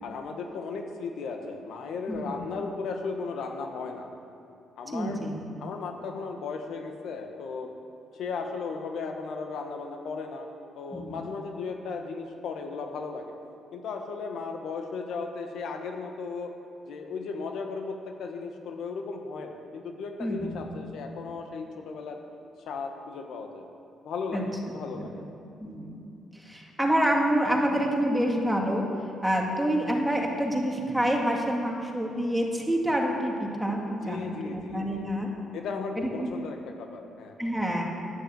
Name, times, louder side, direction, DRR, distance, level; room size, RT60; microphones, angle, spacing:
voice 1, 0.0-4.1 4.8-5.2 5.6-7.7 8.1-10.5 10.8-13.3 13.7-16.5 16.8-22.2 22.7-23.7 24.0-25.2 34.0-35.1 35.5-37.4, left 4 dB, 75° left, 4 dB, 1.4 m, -36 dB
voice 2, 2.1-2.4 4.9-5.4 10.9-11.2 20.2-20.7 24.3-24.4 24.9-25.1 25.6-26.0 26.3-28.8 29.2-35.3 36.0-36.3 37.4-37.8, equal, 5° right, 0 dB, 2.3 m, -27 dB
10.5 x 10.0 x 7.7 m, 2.8 s
cardioid pair, 90°, 0 cm